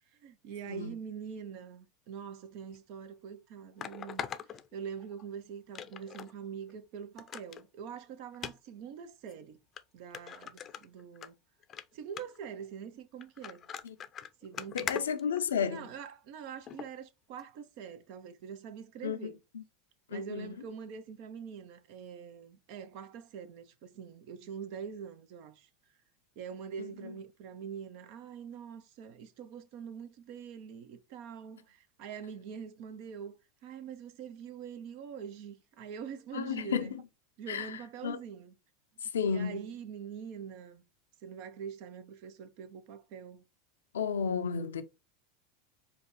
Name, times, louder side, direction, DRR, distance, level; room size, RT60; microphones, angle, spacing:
voice 1, 0.2-9.6 9.9-11.3 11.9-13.7 14.4-15.1 15.7-19.4 20.1-25.7 26.4-33.4 33.6-36.9 37.4-38.5 39.3-40.8 41.2-43.4, right 7 dB, 60° right, 0.8 m, -44 dB
sound 1, 2.7-2.8 3.8-5.2 5.7-6.3 6.7-6.8 7.2-7.6 8.3-8.5 9.3-9.4 9.8-9.9 10.1-11.3 11.6-11.8 12.2-12.5 13.2-15.9 16.7-16.9 17.4-17.5, left 8 dB, 35° left, 0.5 m, -41 dB
voice 2, 14.7-15.9 19.0-19.6 20.1-20.5 36.3-37.0 37.5-38.2 39.0-39.6 43.9-44.8, left 7 dB, 85° left, 0.5 m, -33 dB
5.1 x 2.4 x 4.1 m
hypercardioid pair, 95°, 0 cm